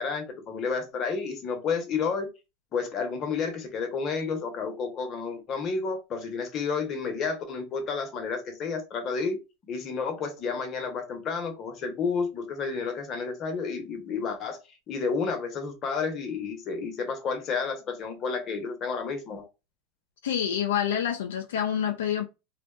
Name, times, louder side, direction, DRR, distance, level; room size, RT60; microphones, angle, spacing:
voice 1, 0.0-2.3 2.7-9.4 9.7-14.6 14.9-19.5, left 5 dB, 40° left, 0.8 m, -31 dB
voice 2, 20.2-22.2, left 9 dB, 85° left, 0.4 m, -27 dB
2.5 x 2.2 x 2.3 m
hypercardioid pair, 105°, 0 cm